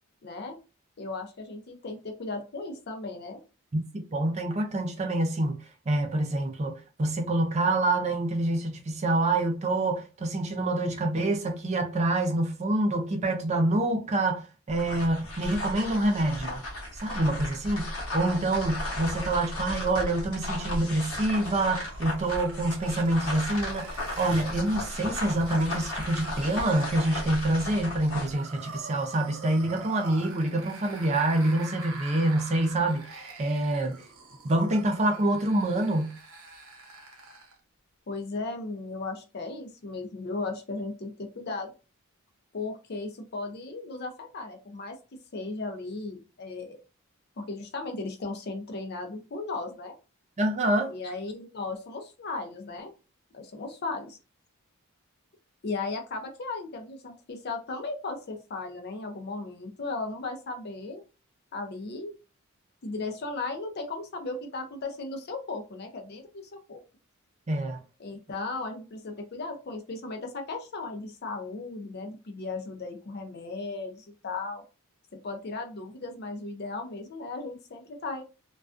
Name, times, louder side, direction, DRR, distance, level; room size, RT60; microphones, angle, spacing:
voice 1, 0.2-0.6 1.0-3.4 38.1-41.7 42.5-45.0 45.3-46.8 47.4-49.9 50.9-52.9 53.3-54.2 55.6-61.0 61.5-62.2 62.8-66.8 68.0-74.6 75.2-78.2, left 3 dB, 50° left, 0.5 m, -36 dB
voice 2, 3.7-16.6 16.9-34.0 34.4-36.2 50.4-50.9 67.5-67.8, right 2 dB, 30° right, 0.4 m, -26 dB
sound 1, 14.7-28.4, left 1 dB, 65° left, 0.9 m, -35 dB
sound 2, 21.0-37.6, right 3 dB, 75° right, 0.7 m, -46 dB
2.3 x 2.2 x 2.4 m
head